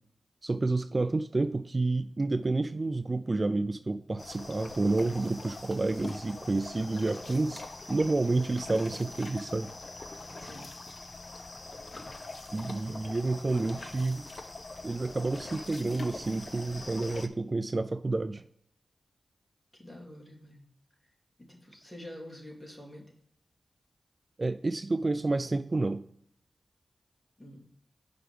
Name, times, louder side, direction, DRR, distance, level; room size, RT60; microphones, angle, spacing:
voice 1, 0.4-9.7 12.5-14.3 14.8-18.4 24.4-26.0, right 2 dB, 40° right, 0.4 m, -29 dB
sound 1, 4.2-17.3, left 2 dB, 45° left, 0.8 m, -43 dB
voice 2, 10.4-10.7 19.7-20.6 21.4-23.1 27.4-27.7, left 1 dB, 15° left, 2.9 m, -47 dB
5.9 x 5.0 x 6.6 m
cardioid pair, 60°, 0 cm